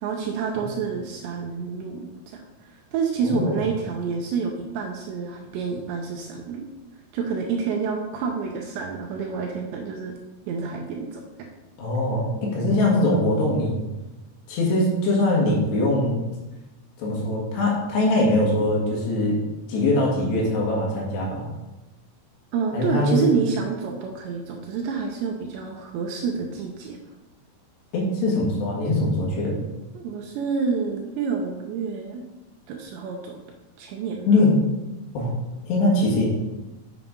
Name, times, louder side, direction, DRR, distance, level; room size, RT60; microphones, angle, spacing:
voice 1, 0.0-2.1 2.3-2.4 2.9-6.7 7.1-10.2 10.5-11.2 22.5-27.0 30.0-32.2 32.7-33.4 33.8-34.3, right 5 dB, 80° right, 2 dB, 2.7 m, -28 dB
voice 2, 3.2-3.6 11.8-13.8 14.5-16.2 17.0-19.4 19.7-21.5 22.7-23.4 27.9-29.6 34.3-34.6 35.2-35.3 35.7-36.3, left 2 dB, 65° left, -3 dB, 3.7 m, -22 dB
7.4 x 7.2 x 5.2 m, 1.1 s
omnidirectional pair, 5.7 m